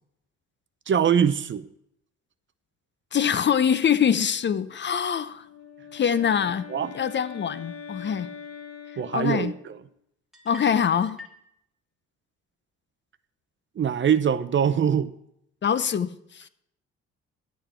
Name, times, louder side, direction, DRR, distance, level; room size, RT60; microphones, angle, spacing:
voice 1, 0.9-1.7 6.7-6.9 9.0-9.8 13.8-15.1, right 8 dB, 40° right, 0.6 m, -23 dB
voice 2, 3.1-5.4 5.9-6.7 6.9-8.3 9.1-9.5 10.5-11.3 15.6-16.5, left 8 dB, 40° left, 0.5 m, -24 dB
Wind instrument woodwind instrument, 5.3-9.9, left 7 dB, 60° left, 1.4 m, -43 dB
sound 1, 10.3-11.4, left 1 dB, ahead, 1.4 m, -45 dB
10.0 x 8.0 x 4.4 m
cardioid pair, 90°, 30 cm